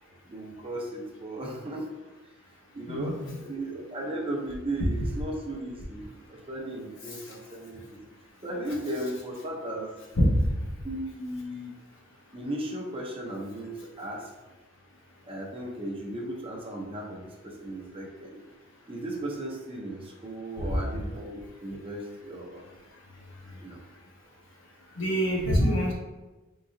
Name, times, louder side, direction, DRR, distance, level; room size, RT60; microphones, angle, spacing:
voice 1, 0.3-1.9 2.7-8.0 8.4-9.9 10.8-11.8 12.3-14.3 15.3-18.5 18.9-22.6 23.6-23.8 25.7-25.8, right 1 dB, 25° right, 0 dB, 0.6 m, -36 dB
voice 2, 2.9-3.4 10.1-10.4 20.7-20.8 25.0-25.9, equal, 65° left, -2 dB, 1.0 m, -24 dB
3.9 x 3.7 x 2.6 m, 1.2 s
head